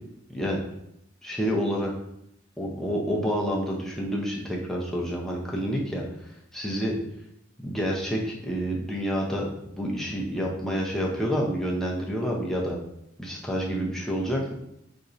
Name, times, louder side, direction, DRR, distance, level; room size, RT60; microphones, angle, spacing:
voice 1, 1.2-1.9 2.6-6.0 6.5-6.9 7.6-12.8 13.2-14.5, equal, ahead, -3 dB, 0.6 m, -28 dB
4.2 x 2.6 x 2.5 m, 0.79 s
head